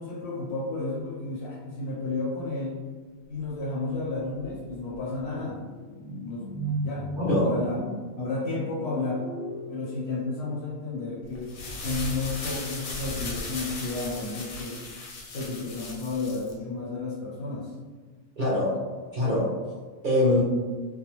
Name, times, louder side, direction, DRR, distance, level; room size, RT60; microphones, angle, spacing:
voice 1, 0.0-2.8 3.3-6.5 6.8-7.8 8.2-9.2 9.7-14.8 15.3-17.7, left 3 dB, 65° left, -5 dB, 0.7 m, -32 dB
sound 1, 4.9-10.5, right 1 dB, 20° right, 0.8 m, -37 dB
voice 2, 7.2-7.5 18.4-18.8 19.1-19.5 20.0-20.4, left 1 dB, 55° right, -7 dB, 0.6 m, -23 dB
sound 2, 11.3-16.5, left 3 dB, 85° left, 1.1 m, -37 dB
2.3 x 2.2 x 2.9 m, 1.4 s
omnidirectional pair, 1.4 m